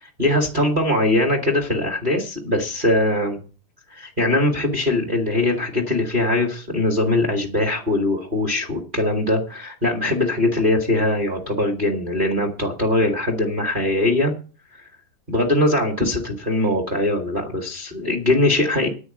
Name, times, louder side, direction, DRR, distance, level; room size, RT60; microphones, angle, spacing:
voice 1, 0.0-3.4 3.9-14.3 15.3-18.9, left 1 dB, 50° right, 2 dB, 0.6 m, -21 dB
10.0 x 6.3 x 8.9 m, 0.36 s
omnidirectional pair, 4.8 m